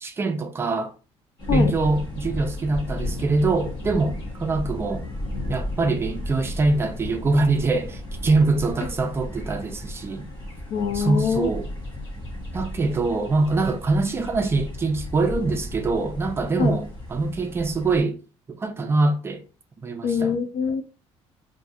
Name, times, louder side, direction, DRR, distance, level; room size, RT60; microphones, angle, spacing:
voice 1, 0.0-0.9 1.5-5.1 5.5-10.3 10.9-11.7 12.5-18.2 18.5-19.4 19.8-20.3, right 3 dB, 20° right, 0.4 m, -24 dB
sound 1, 1.4-18.0, left 1 dB, 40° left, 1.1 m, -34 dB
voice 2, 10.7-11.5 16.6-16.8 20.0-20.8, left 6 dB, 60° left, 0.5 m, -23 dB
2.5 x 2.4 x 4.1 m
cardioid pair, 155°, 11 cm